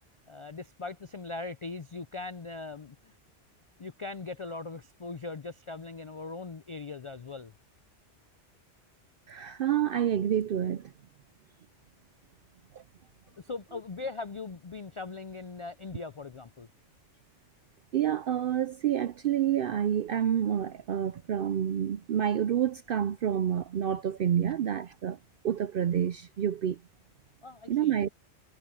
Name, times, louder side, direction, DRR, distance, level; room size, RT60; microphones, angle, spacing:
voice 1, 0.3-3.2 3.8-7.5 13.4-16.7 27.4-28.0, left 3 dB, 50° left, 0.3 m, -40 dB
voice 2, 9.3-10.9 12.7-12.8 17.9-25.2 25.4-26.8 27.7-28.1, right 9 dB, 60° right, 0.6 m, -28 dB
omnidirectional pair, 1.2 m